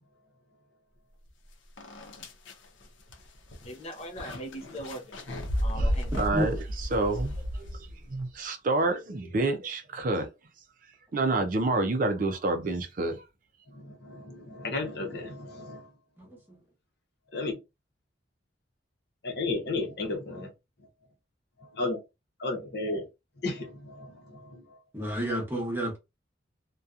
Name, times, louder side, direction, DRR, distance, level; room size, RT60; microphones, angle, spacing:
sound 1, 1.3-1.4 1.8-8.1, equal, 90° left, 0.7 m, -33 dB
voice 1, 3.6-5.1 5.6-6.2, equal, 35° left, 0.5 m, -40 dB
voice 2, 5.7-10.3 11.1-13.2, right 2 dB, 45° right, 0.4 m, -29 dB
voice 3, 13.7-15.8 17.3-17.6 19.2-20.5 21.8-22.0 22.4-23.0 23.4-24.6, left 3 dB, 60° left, 0.8 m, -33 dB
voice 4, 16.2-16.6 24.9-26.0, equal, 10° right, 0.9 m, -30 dB
2.7 x 2.2 x 2.4 m
head